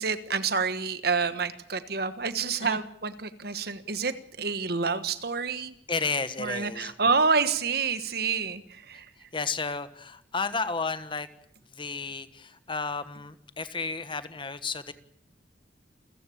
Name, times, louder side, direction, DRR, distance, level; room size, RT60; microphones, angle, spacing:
voice 1, 0.0-5.7 6.4-9.0, right 5 dB, 60° right, 12 dB, 1.4 m, -28 dB
voice 2, 5.9-6.9 9.3-11.3 11.8-14.9, left 4 dB, 30° left, 12 dB, 1.4 m, -32 dB
28.5 x 15.0 x 8.7 m, 0.71 s
head